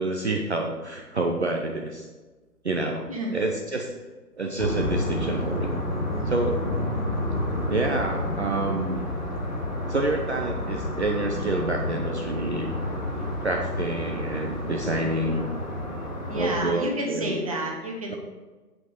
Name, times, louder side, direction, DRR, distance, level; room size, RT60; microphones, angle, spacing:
voice 1, 0.0-2.1 2.6-3.0 3.3-3.9 4.4-5.7 6.3-6.6 7.7-9.1 9.9-12.7 13.1-15.5 16.3-17.4, right 2 dB, 45° right, 2 dB, 0.8 m, -28 dB
voice 2, 3.1-3.4 15.3-15.4 16.3-18.1, right 1 dB, 20° right, 0 dB, 1.0 m, -30 dB
sound 1, 4.6-16.6, left 1 dB, 30° left, 2.1 m, -30 dB
7.9 x 6.1 x 5.5 m, 1.3 s
figure-of-eight pair, 145°, 47 cm